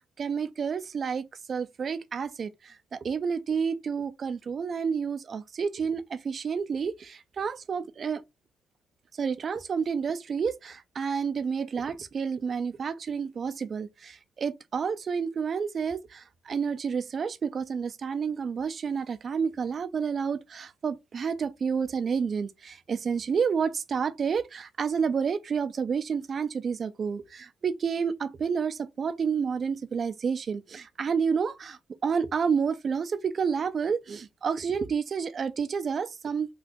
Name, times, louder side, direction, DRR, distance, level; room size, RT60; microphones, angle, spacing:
voice 1, 0.2-8.2 9.1-36.5, right 6 dB, 45° right, 0.4 m, -30 dB
3.7 x 2.3 x 2.6 m
cardioid pair, 90°, 0 cm